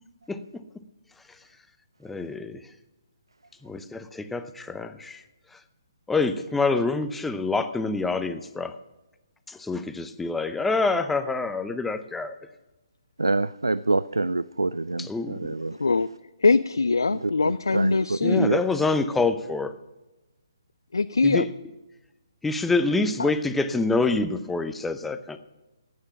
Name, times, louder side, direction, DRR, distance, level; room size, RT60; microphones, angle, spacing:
voice 1, 0.3-0.6 2.0-2.6 3.6-5.2 6.1-8.7 9.5-12.3 15.0-15.4 18.2-19.7 21.2-21.5 22.4-25.4, left 3 dB, 5° left, 0.7 m, -26 dB
voice 2, 13.2-15.8 17.1-18.9, right 2 dB, 80° right, 0.4 m, -27 dB
voice 3, 16.4-18.5 20.9-21.5 23.2-23.3, left 4 dB, 70° left, 0.4 m, -22 dB
15.0 x 9.5 x 5.9 m
figure-of-eight pair, 135°, 2 cm